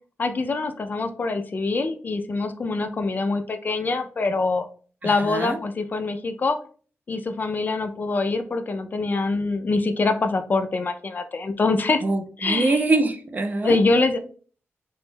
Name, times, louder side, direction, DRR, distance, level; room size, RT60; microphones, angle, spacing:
voice 1, 0.2-4.6 5.0-6.6 7.1-12.0 12.4-12.8 13.6-14.2, left 3 dB, 40° left, 8 dB, 0.3 m, -24 dB
voice 2, 5.0-5.6 12.0-13.8, right 2 dB, 35° right, 6 dB, 0.4 m, -24 dB
3.0 x 2.2 x 3.2 m, 0.42 s
wide cardioid pair, 120°, 5 cm